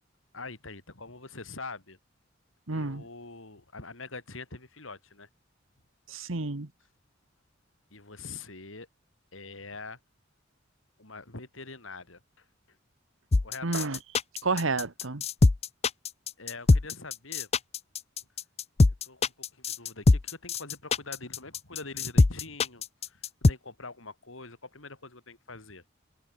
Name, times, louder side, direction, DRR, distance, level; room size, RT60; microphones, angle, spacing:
voice 1, 0.3-2.0 2.7-5.3 7.9-8.9 9.3-10.0 11.0-12.4 13.4-13.9 16.4-17.5 19.0-25.8, left 3 dB, 85° left, 4.5 m, -44 dB
voice 2, 2.7-3.0 6.1-6.7 13.6-14.0 14.4-15.2, right 3 dB, 90° right, 1.4 m, -30 dB
sound 1, 13.3-23.5, left 3 dB, 30° left, 0.5 m, -22 dB
head